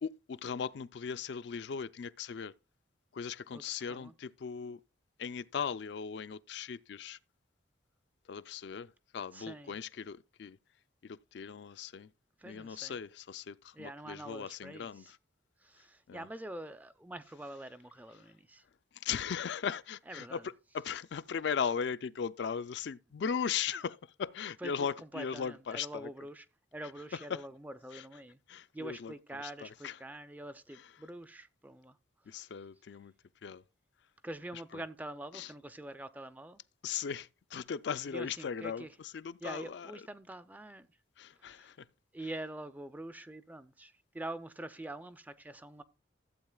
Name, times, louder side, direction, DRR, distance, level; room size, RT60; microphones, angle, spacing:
voice 1, 0.0-2.5 3.1-4.8 5.2-7.2 8.3-8.9 9.1-10.6 11.1-12.1 12.4-15.0 16.1-16.2 19.0-20.4 20.7-26.1 27.3-27.4 28.5-29.1 29.8-29.9 32.3-33.1 33.4-33.6 35.3-35.5 36.8-38.8 39.1-39.9 41.2-41.7, left 7 dB, 60° left, 0.4 m, -38 dB
voice 2, 3.5-4.1 9.3-9.8 12.4-13.0 13.7-15.1 15.6-18.6 20.1-20.5 24.6-26.5 26.7-28.4 28.7-32.0 32.3-32.4 34.2-36.6 38.0-39.0 39.4-40.9 41.4-41.7 42.1-45.8, right 1 dB, 10° right, 0.4 m, -45 dB
15.0 x 8.0 x 2.3 m
head